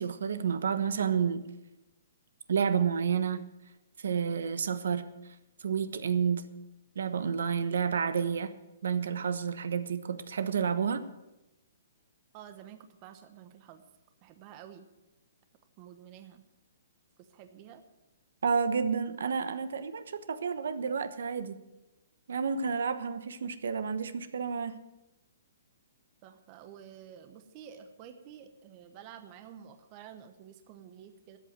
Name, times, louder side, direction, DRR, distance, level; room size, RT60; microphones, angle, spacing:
voice 1, 0.0-1.5 2.5-3.5 4.0-5.3 5.6-6.5 6.9-8.5 8.8-11.0 18.4-21.6 22.3-24.8, right 6 dB, 75° right, 12 dB, 1.1 m, -30 dB
voice 2, 12.3-13.8 14.2-14.9 15.8-16.4 17.2-17.8 26.2-31.4, right 9 dB, 25° right, 9 dB, 1.0 m, -50 dB
13.5 x 8.3 x 8.8 m, 0.96 s
hypercardioid pair, 165°, 0 cm